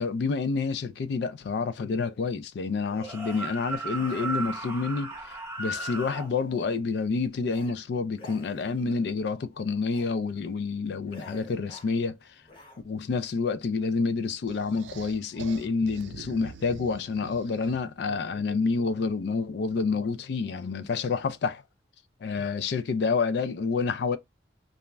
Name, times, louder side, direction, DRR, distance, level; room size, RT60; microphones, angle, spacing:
voice 1, 0.0-12.4 12.8-21.6 22.2-24.2, left 4 dB, 65° left, 0.3 m, -28 dB
sound 1, 2.9-6.3, right 2 dB, 15° right, 0.7 m, -35 dB
sound 2, 3.3-3.5 3.9-4.8 5.6-6.6 7.4-7.7 8.1-9.0 9.8-10.1 10.5-10.7 11.1-12.0 12.4-12.8, equal, 30° left, 0.7 m, -50 dB
sound 3, 14.5-18.0, right 6 dB, 80° right, 0.4 m, -45 dB
2.4 x 2.0 x 3.2 m
head